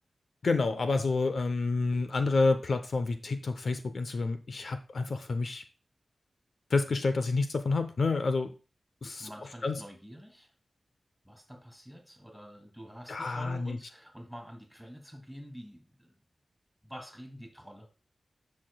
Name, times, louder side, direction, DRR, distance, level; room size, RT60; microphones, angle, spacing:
voice 1, 0.4-5.6 6.7-8.5 9.0-9.3 9.6-9.8 13.1-13.8, left 3 dB, 70° left, 8 dB, 0.6 m, -29 dB
voice 2, 9.0-10.5 11.2-16.1 16.8-17.9, equal, ahead, 3 dB, 2.5 m, -47 dB
8.9 x 5.8 x 2.2 m, 0.34 s
cardioid pair, 50°, 0 cm